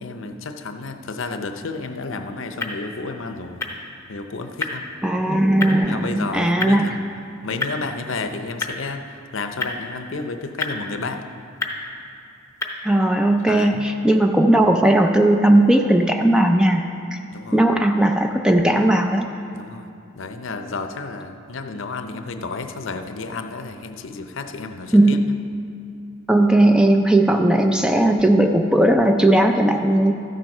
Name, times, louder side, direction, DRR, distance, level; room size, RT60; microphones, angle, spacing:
voice 1, 0.0-3.7 4.1-4.9 5.9-6.9 7.4-9.0 9.3-11.2 13.5-13.8 17.3-17.6 19.5-19.9 20.2-25.2 27.3-27.9, left 3 dB, 60° left, 7 dB, 0.6 m, -31 dB
sound 1, 1.7-13.0, left 2 dB, 15° left, 0.7 m, -34 dB
voice 2, 5.0-6.9 12.8-16.8 17.1-17.2 17.5-19.3 24.9-25.3 26.3-30.1, right 1 dB, 5° right, 5 dB, 0.3 m, -17 dB
13.5 x 7.6 x 5.4 m, 2.5 s
head